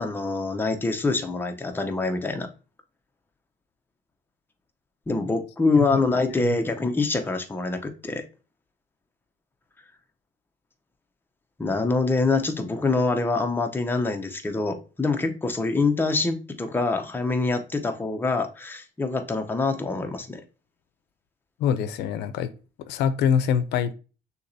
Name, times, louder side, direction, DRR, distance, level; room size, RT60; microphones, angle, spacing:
voice 1, 0.0-2.5 5.1-8.3 11.6-20.4, left 3 dB, 10° left, 5 dB, 0.7 m, -25 dB
voice 2, 21.6-22.5 22.8-23.9, left 8 dB, 80° left, 13 dB, 0.5 m, -24 dB
6.4 x 2.9 x 2.7 m, 0.34 s
cardioid pair, 110°, 17 cm